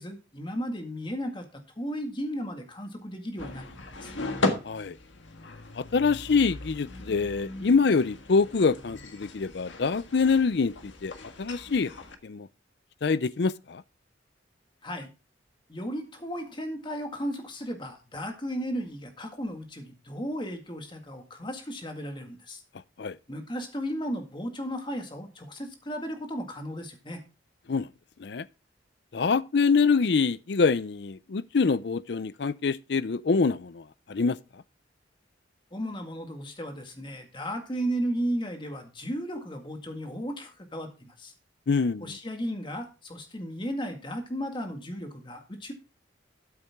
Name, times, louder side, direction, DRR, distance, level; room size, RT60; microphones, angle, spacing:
voice 1, 0.0-3.7 4.0-4.1 14.8-15.1 15.7-22.6 23.3-27.2 35.7-41.3 42.0-45.7, equal, 25° left, 1.9 m, -35 dB
sound 1, 3.4-12.2, left 2 dB, 75° left, 1.6 m, -36 dB
voice 2, 4.6-5.0 5.8-11.1 11.4-11.9 12.2-12.5 13.0-13.8 23.0-23.2 27.7-27.9 28.2-28.5 29.1-34.6 41.7-42.2, left 4 dB, 60° left, 0.5 m, -25 dB
13.0 x 8.4 x 3.6 m
head